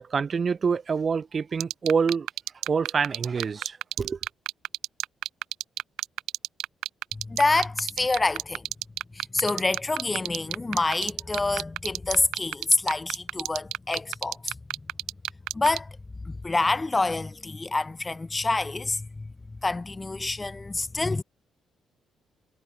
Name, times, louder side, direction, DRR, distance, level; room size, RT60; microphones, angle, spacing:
voice 1, 0.0-2.3 2.7-4.2, right 5 dB, 40° right, 4.9 m, -26 dB
sound 1, 1.6-15.8, right 14 dB, 85° right, 0.9 m, -29 dB
voice 2, 7.3-8.6 9.1-14.5 15.5-15.9 16.4-19.1 19.6-21.2, left 3 dB, 20° left, 1.4 m, -27 dB
cardioid pair, 90°, 0 cm